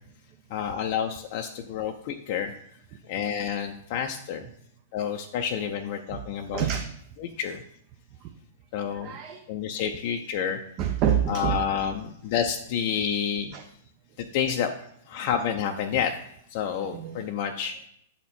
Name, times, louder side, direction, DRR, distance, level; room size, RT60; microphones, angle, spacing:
voice 1, 0.5-2.6 3.0-4.5 4.9-6.7 7.2-7.6 8.7-9.1 9.5-10.6 11.3-13.6 14.2-14.7 15.1-16.1 16.5-17.8, left 8 dB, 50° left, 4 dB, 0.5 m, -29 dB
voice 2, 6.5-6.9 8.2-8.3 9.0-9.4 10.8-11.6 13.5-13.6 16.8-17.2, right 9 dB, 40° right, 4 dB, 0.6 m, -27 dB
8.0 x 4.3 x 4.2 m, 0.70 s
hypercardioid pair, 110°, 0 cm